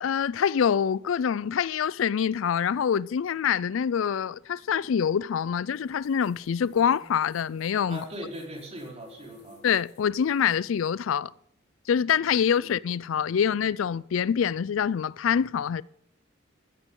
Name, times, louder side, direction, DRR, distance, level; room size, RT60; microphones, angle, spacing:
voice 1, 0.0-8.0 9.6-11.3 11.9-15.8, left 7 dB, 85° left, 0.4 m, -25 dB
sound 1, 5.6-10.8, left 1 dB, 60° left, 3.9 m, -55 dB
voice 2, 7.9-9.6 12.6-12.7, equal, 35° right, 4.3 m, -40 dB
14.5 x 14.0 x 3.8 m
head